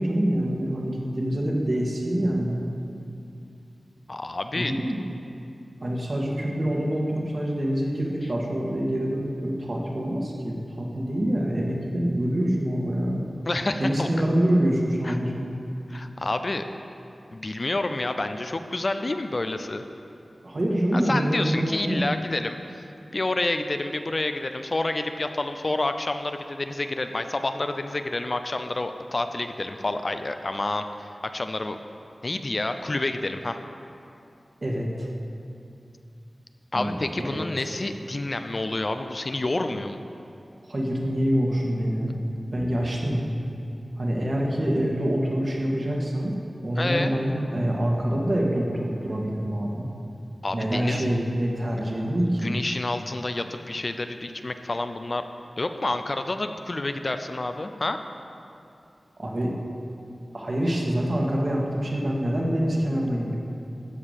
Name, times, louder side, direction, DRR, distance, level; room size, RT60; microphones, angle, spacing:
voice 1, 0.0-2.7 4.5-5.0 5.8-13.3 13.8-15.5 20.4-22.0 34.6-35.1 36.7-37.7 40.6-42.2 42.5-43.3 44.0-46.3 46.6-49.9 50.5-52.6 59.2-59.5 60.3-63.4, equal, 45° right, -2 dB, 1.9 m, -26 dB
voice 2, 4.1-4.7 13.5-14.1 15.0-15.2 15.9-16.6 17.3-19.8 20.9-22.8 23.1-31.8 32.2-33.6 36.7-40.0 46.8-47.2 50.4-51.0 52.4-55.2 55.6-58.0, left 2 dB, 40° left, 8 dB, 0.5 m, -29 dB
13.0 x 5.1 x 8.2 m, 2.6 s
wide cardioid pair, 90°, 0 cm